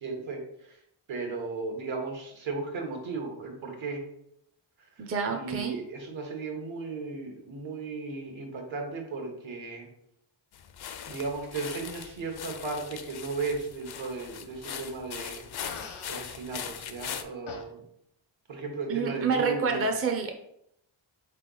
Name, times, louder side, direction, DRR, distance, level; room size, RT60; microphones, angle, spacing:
voice 1, 0.0-0.8 1.1-4.0 5.0-9.9 11.0-15.5 16.1-17.8 18.5-19.9, right 3 dB, 70° right, 2 dB, 1.2 m, -35 dB
voice 2, 5.0-5.8 18.9-20.3, right 5 dB, 30° right, 4 dB, 0.5 m, -28 dB
sound 1, 10.5-17.2, left 8 dB, 55° left, 0.5 m, -40 dB
Fart, 15.6-16.2 17.5-17.6, left 5 dB, 80° left, 0.9 m, -40 dB
4.0 x 3.3 x 3.8 m, 0.75 s
wide cardioid pair, 95°, 48 cm